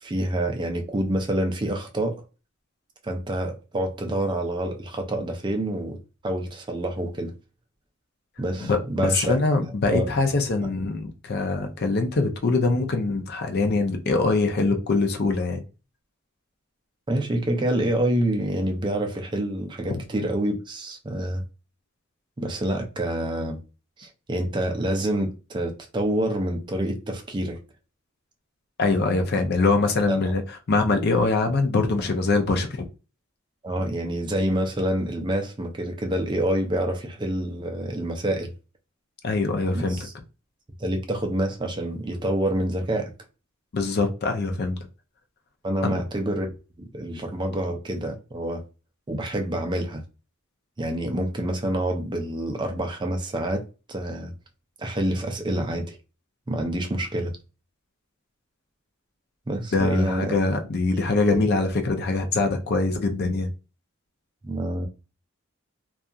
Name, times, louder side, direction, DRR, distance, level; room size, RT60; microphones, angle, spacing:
voice 1, 0.0-2.2 3.0-6.0 6.2-7.3 8.4-9.3 9.9-10.1 17.1-21.4 22.4-23.6 24.0-27.6 30.1-30.3 33.6-38.5 39.7-40.1 40.8-43.1 45.6-46.5 46.9-48.6 49.1-50.0 50.8-53.6 53.9-54.3 54.8-56.0 56.5-57.3 59.5-60.3 60.9-61.0 61.3-61.4 64.4-64.9, right 1 dB, 20° right, 0.4 m, -27 dB
voice 2, 8.6-15.6 19.9-20.0 28.8-30.4 30.7-32.9 39.2-40.0 43.7-44.8 45.8-46.0 59.7-63.5, left 3 dB, 50° left, 0.5 m, -23 dB
2.7 x 2.3 x 2.3 m
head